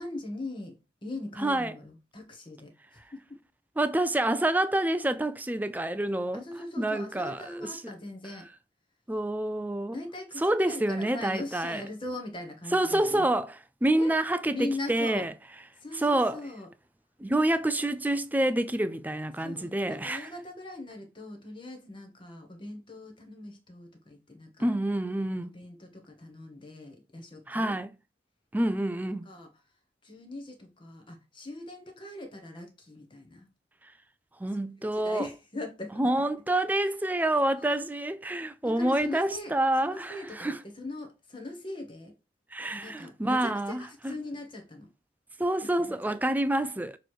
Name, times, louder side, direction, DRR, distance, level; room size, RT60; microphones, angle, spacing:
voice 1, 0.0-3.4 6.3-8.5 9.9-13.3 13.9-14.1 14.5-15.3 15.8-16.7 19.4-24.7 25.4-27.7 29.2-29.5 30.0-33.5 34.8-36.0 37.6-37.8 38.6-42.1 42.7-44.9 45.6-46.2, left 2 dB, 30° left, 1.3 m, -40 dB
voice 2, 1.4-1.7 3.8-6.5 6.8-7.9 9.1-10.0 10.4-11.8 12.7-15.3 15.9-16.4 17.2-20.3 24.6-25.5 27.5-27.9 28.5-29.3 34.4-35.3 36.0-40.6 42.5-44.2 45.4-47.0, right 1 dB, 10° right, 0.4 m, -28 dB
6.6 x 3.2 x 4.5 m
head